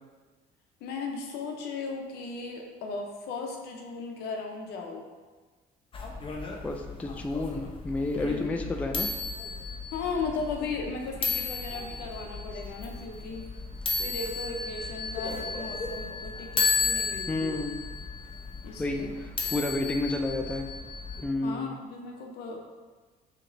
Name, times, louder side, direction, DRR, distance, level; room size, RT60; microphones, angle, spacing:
voice 1, 0.8-5.0 8.2-8.6 9.9-13.5 14.0-17.6 18.6-19.1 21.4-22.6, left 4 dB, 80° left, 2 dB, 0.7 m, -36 dB
sound 1, 5.9-21.2, left 4 dB, 30° left, 0.7 m, -34 dB
voice 2, 6.6-9.1 17.3-17.8 18.8-20.7 21.2-21.8, left 2 dB, 10° left, 3 dB, 0.3 m, -30 dB
6.3 x 2.9 x 2.6 m, 1.4 s
cardioid pair, 110°, 17 cm